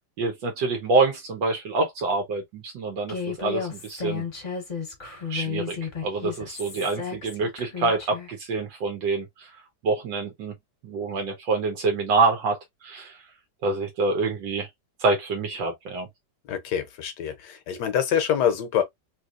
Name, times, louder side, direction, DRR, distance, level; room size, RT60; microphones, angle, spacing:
voice 1, 0.2-4.2 5.3-5.8 6.0-9.5 9.8-10.5 10.8-13.2 13.6-14.7 15.0-16.1, right 3 dB, 80° right, 1.6 m, -26 dB
Human voice, 3.1-8.3, left 6 dB, 30° left, 0.8 m, -33 dB
voice 2, 16.4-18.8, left 9 dB, 70° left, 1.2 m, -25 dB
3.4 x 3.0 x 2.3 m
omnidirectional pair, 2.0 m